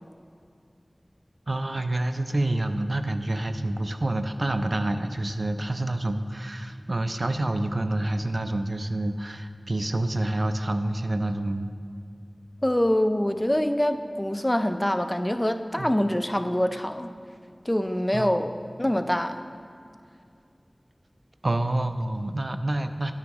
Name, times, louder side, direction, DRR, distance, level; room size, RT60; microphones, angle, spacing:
voice 1, 1.5-11.7 15.8-16.0 18.1-18.4 21.4-23.1, right 1 dB, 65° right, 8 dB, 0.4 m, -28 dB
voice 2, 12.6-17.1 17.7-18.5 18.8-19.4, left 1 dB, 20° left, 8 dB, 0.4 m, -25 dB
10.5 x 9.4 x 3.0 m, 2.4 s
wide cardioid pair, 45°, 0 cm